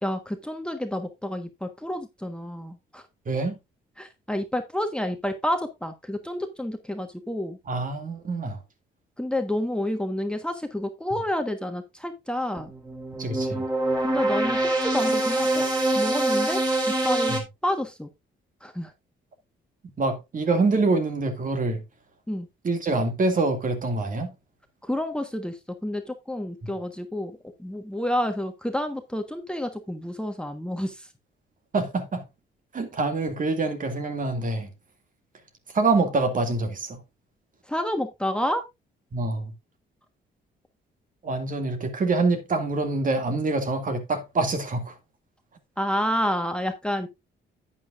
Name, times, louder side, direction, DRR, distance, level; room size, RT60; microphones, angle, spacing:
voice 1, 0.0-3.0 4.0-7.6 9.2-12.7 14.0-15.6 15.9-17.4 17.6-18.1 18.6-18.9 22.3-22.5 24.8-31.1 37.7-38.6 45.8-47.1, left 1 dB, 5° left, 1.3 m, -29 dB
voice 2, 3.3-3.6 7.7-8.6 13.2-13.6 17.3-17.4 20.0-21.8 22.6-24.3 26.6-26.7 31.7-32.2 32.7-34.7 35.7-37.0 39.1-39.5 41.2-44.9, right 3 dB, 45° right, 2.3 m, -25 dB
sound 1, 12.6-17.4, right 2 dB, 20° right, 4.1 m, -25 dB
11.0 x 8.8 x 2.5 m
cardioid pair, 90°, 20 cm